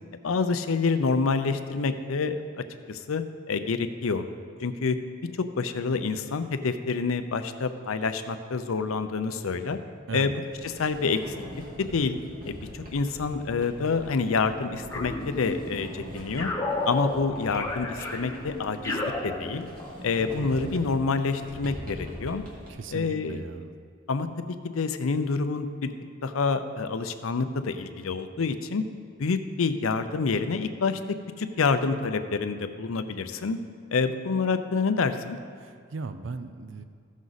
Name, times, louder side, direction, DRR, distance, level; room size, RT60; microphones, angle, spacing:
voice 1, 0.2-2.4 2.9-4.2 4.6-5.0 5.6-9.8 10.1-11.3 11.8-12.2 12.4-16.5 16.9-19.7 20.0-22.4 22.9-23.4 24.1-24.3 24.6-25.9 26.2-28.8 29.2-31.0 31.4-33.6 33.9-35.4, left 4 dB, 85° left, 10 dB, 0.6 m, -27 dB
Sliding door, 10.4-22.7, equal, 45° right, 1.9 m, -43 dB
sound 1, 14.9-15.9 16.4-20.0, left 2 dB, 15° left, 0.8 m, -32 dB
voice 2, 22.7-23.7 35.6-36.8, right 4 dB, 65° right, 10 dB, 0.5 m, -37 dB
15.0 x 6.2 x 4.0 m, 2.1 s
head